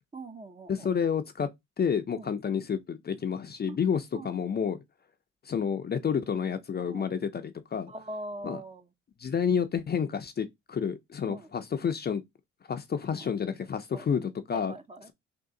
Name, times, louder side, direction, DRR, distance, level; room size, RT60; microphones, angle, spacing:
voice 1, 0.1-0.9 2.1-2.3 3.7-3.8 4.1-4.4 6.9-7.1 7.9-8.9 11.2-11.5 13.1-13.3 13.9-14.1 14.5-15.1, right 2 dB, 20° right, 0.6 m, -42 dB
voice 2, 0.7-1.5 1.8-4.8 5.4-7.9 8.4-8.6 9.2-12.2 12.7-14.7, left 7 dB, 35° left, 0.5 m, -30 dB
3.6 x 2.5 x 3.7 m
cardioid pair, 90°, 30 cm